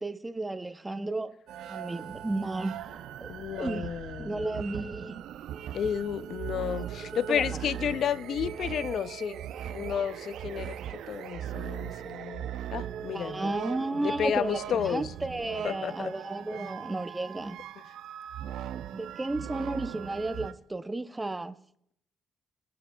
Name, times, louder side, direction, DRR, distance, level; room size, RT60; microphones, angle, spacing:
voice 1, 0.0-1.3 1.7-2.8 3.2-3.3 3.6-3.8 4.2-5.2 7.1-7.5 13.1-17.6 18.9-21.5, right 2 dB, 15° right, 0.6 m, -33 dB
sound 1, 1.5-20.5, right 10 dB, 80° right, 0.5 m, -39 dB
voice 2, 3.3-4.5 5.7-9.4 9.7-10.8 11.1-13.5 14.0-15.1 15.6-16.1 16.5-16.6, left 8 dB, 65° left, 0.3 m, -32 dB
22.0 x 7.6 x 2.2 m
cardioid pair, 90°, 0 cm